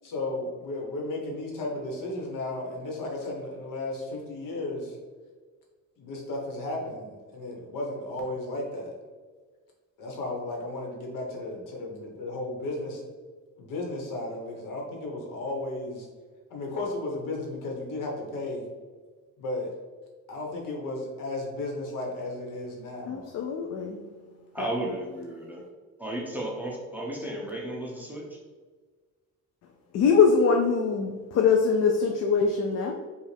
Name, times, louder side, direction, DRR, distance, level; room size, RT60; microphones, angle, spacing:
voice 1, 0.0-5.0 6.0-8.9 10.0-13.0 13.6-16.1 16.5-18.7 19.4-19.7 20.3-23.3, left 2 dB, 75° left, -1 dB, 1.2 m, -34 dB
voice 2, 23.1-24.0 29.9-32.9, left 5 dB, 55° left, 2 dB, 0.4 m, -23 dB
voice 3, 24.5-25.6 26.0-28.4, right 1 dB, 5° right, -2 dB, 0.5 m, -34 dB
5.1 x 2.4 x 3.3 m, 1.4 s
cardioid pair, 160°, 32 cm